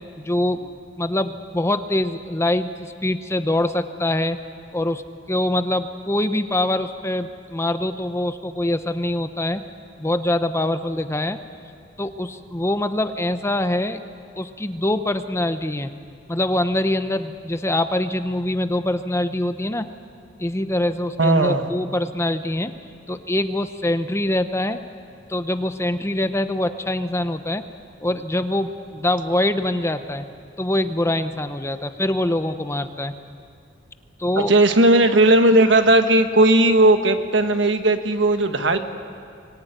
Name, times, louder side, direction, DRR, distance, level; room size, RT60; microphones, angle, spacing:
voice 1, 0.2-0.7 1.0-4.4 4.7-5.0 5.3-9.6 10.0-11.4 12.0-14.0 14.3-15.9 16.3-19.9 20.4-22.7 23.1-24.8 25.3-27.6 28.0-30.3 30.6-33.1 34.2-34.5, left 1 dB, 15° left, 9 dB, 0.8 m, -24 dB
voice 2, 21.2-21.7 34.5-38.8, right 1 dB, 70° right, 8 dB, 1.4 m, -16 dB
24.5 x 18.0 x 9.2 m, 2.3 s
head